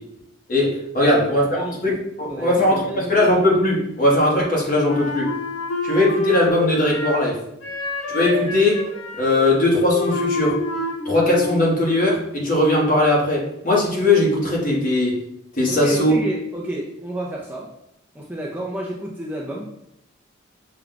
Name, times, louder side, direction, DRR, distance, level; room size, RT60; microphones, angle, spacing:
voice 1, 0.5-5.4 5.8-7.4 8.1-8.9 9.1-10.6 11.0-15.2 15.6-16.1, left 1 dB, 40° left, -4 dB, 1.2 m, -19 dB
voice 2, 2.3-3.2 15.7-17.7 18.1-19.7, right 1 dB, 10° right, -3 dB, 0.4 m, -31 dB
Wind instrument woodwind instrument, 4.9-7.3 7.6-11.7, left 2 dB, 75° left, 0.9 m, -28 dB
5.9 x 2.3 x 3.8 m, 0.79 s
head